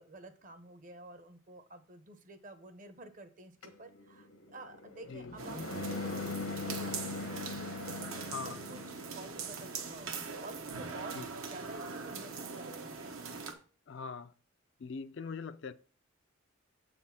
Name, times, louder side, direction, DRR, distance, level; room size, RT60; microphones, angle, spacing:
voice 1, 0.0-13.1, right 2 dB, 40° right, 0.8 m, -51 dB
sound 1, 3.6-9.2, left 3 dB, 85° left, 1.2 m, -41 dB
sound 2, 5.4-13.5, right 4 dB, 80° right, 1.2 m, -42 dB
voice 2, 13.9-14.3 14.8-15.7, left 5 dB, 55° left, 0.4 m, -41 dB
7.7 x 4.2 x 5.7 m
head